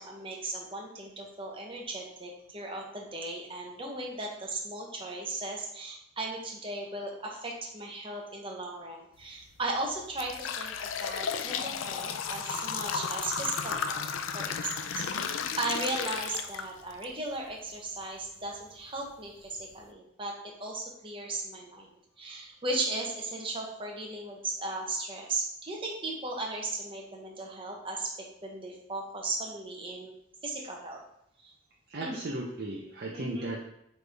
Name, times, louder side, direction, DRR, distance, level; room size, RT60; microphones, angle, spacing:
voice 1, 0.0-14.1 14.3-30.1 30.4-31.0 31.4-31.5 32.0-32.2 33.1-33.5, right 2 dB, 25° right, 0 dB, 1.0 m, -37 dB
sound 1, 9.2-9.4 9.9-17.0 17.5-17.6 18.5-18.6 19.1-19.2 19.6-19.8, left 6 dB, 80° left, 0.5 m, -34 dB
voice 2, 31.9-33.6, right 1 dB, 50° right, -3 dB, 0.8 m, -36 dB
8.0 x 3.4 x 3.5 m, 0.77 s
head